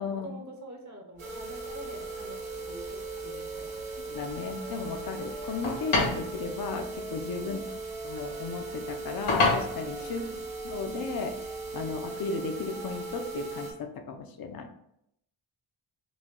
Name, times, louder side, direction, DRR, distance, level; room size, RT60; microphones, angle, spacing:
voice 1, 0.0-3.9 7.4-7.8 9.9-10.4, right 1 dB, 35° right, 1 dB, 0.7 m, -46 dB
sound 1, 1.2-12.0, left 3 dB, 75° left, 1.6 m, -35 dB
sound 2, 1.2-13.7, right 3 dB, 90° right, 1.0 m, -38 dB
voice 2, 4.0-7.6 8.0-10.2 10.6-14.7, left 4 dB, 50° left, 6 dB, 0.6 m, -35 dB
5.0 x 2.2 x 3.7 m, 0.75 s
wide cardioid pair, 140°, 49 cm